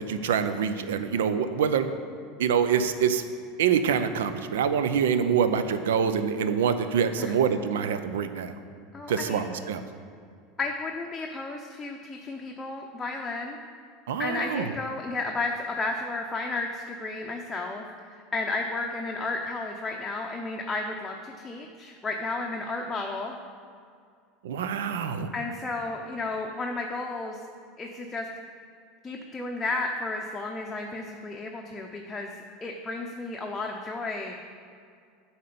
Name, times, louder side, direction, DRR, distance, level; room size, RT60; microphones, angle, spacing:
voice 1, 0.0-1.9 2.4-3.2 3.6-8.5 9.1-9.8 14.1-14.7 24.4-25.3, right 7 dB, 80° right, 10 dB, 0.5 m, -25 dB
voice 2, 8.9-9.4 10.6-13.6 14.2-23.4 25.3-27.4 27.8-28.3 29.0-32.3 32.6-34.3, left 3 dB, 20° left, 1 dB, 0.7 m, -33 dB
7.5 x 4.3 x 6.9 m, 2.3 s
hypercardioid pair, 90°, 0 cm